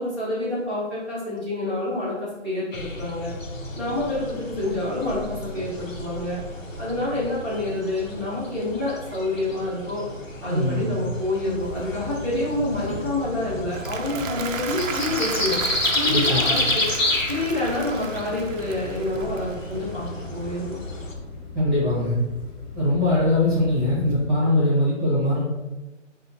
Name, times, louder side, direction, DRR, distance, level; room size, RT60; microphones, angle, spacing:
voice 1, 0.0-3.3 3.8-6.4 6.8-10.1 10.4-15.6 15.9-16.9 17.3-20.8, left 1 dB, 10° left, -10 dB, 0.5 m, -28 dB
sound 1, 2.7-21.1, left 2 dB, 80° left, 1.1 m, -31 dB
voice 2, 10.5-10.9 16.1-16.4 21.5-22.2 22.7-25.4, left 1 dB, 10° right, -9 dB, 1.3 m, -21 dB
sound 2, 11.5-24.3, left 4 dB, 35° left, 0.8 m, -40 dB
Applause, 13.6-19.9, right 6 dB, 85° right, 0.6 m, -34 dB
5.5 x 2.6 x 2.7 m, 1.1 s
figure-of-eight pair, 150°, 38 cm